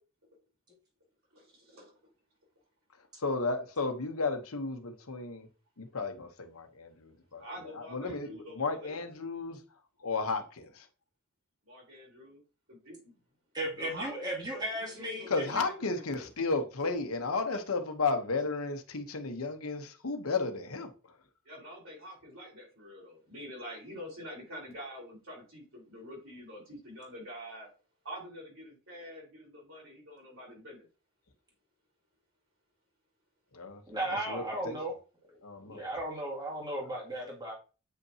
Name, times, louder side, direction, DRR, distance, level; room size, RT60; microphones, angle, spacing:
voice 1, 1.3-1.9 7.4-9.0 11.7-12.4 12.9-13.0 13.8-16.3 17.5-17.6 21.5-27.7 28.0-30.9, equal, 65° right, -2 dB, 4.0 m, -46 dB
voice 2, 3.2-5.5 5.8-9.6 10.0-10.9 15.3-21.2 33.5-33.8 34.1-34.8 35.4-35.8, left 3 dB, 85° left, 6 dB, 1.1 m, -34 dB
voice 3, 13.5-15.3 33.9-34.9 35.2-37.5, right 1 dB, 20° right, -2 dB, 2.0 m, -36 dB
8.4 x 5.5 x 2.9 m, 0.34 s
head